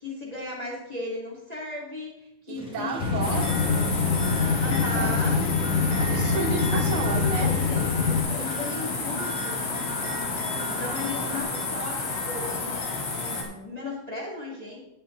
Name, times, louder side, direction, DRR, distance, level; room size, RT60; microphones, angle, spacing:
voice 1, 0.0-3.0 4.6-5.4 6.7-12.8 13.1-14.8, left 2 dB, 15° left, -4 dB, 2.0 m, -36 dB
sound 1, 2.5-11.4, left 1 dB, 5° right, 0.7 m, -38 dB
voice 2, 2.5-5.5 6.0-7.6, right 4 dB, 90° right, 3 dB, 2.7 m, -34 dB
sound 2, 3.0-8.2, left 5 dB, 70° left, 2.6 m, -25 dB
sound 3, 3.2-13.4, left 3 dB, 85° left, 3.7 m, -31 dB
9.7 x 8.8 x 3.9 m, 0.87 s
omnidirectional pair, 3.3 m